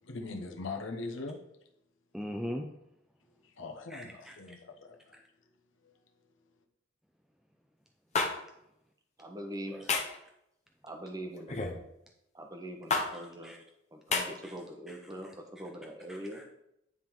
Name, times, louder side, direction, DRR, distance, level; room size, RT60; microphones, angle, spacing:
voice 1, 0.0-1.4 3.4-5.2 5.8-5.9, left 3 dB, 70° left, 3 dB, 1.0 m, -41 dB
voice 2, 2.1-2.7 3.9-4.3 9.7-9.8 12.9-13.0 13.4-13.6 14.4-14.5 14.9-15.0 16.1-16.4, equal, ahead, 2 dB, 0.4 m, -40 dB
sound 1, 8.1-8.3 9.9-10.2 11.5-11.8 12.9-13.1 14.1-14.3, left 4 dB, 35° left, 0.9 m, -28 dB
voice 3, 9.2-9.8 10.8-11.5 12.3-13.6 13.9-15.3 15.6-16.4, right 1 dB, 20° right, 3 dB, 0.9 m, -42 dB
9.7 x 3.7 x 4.6 m, 0.82 s
head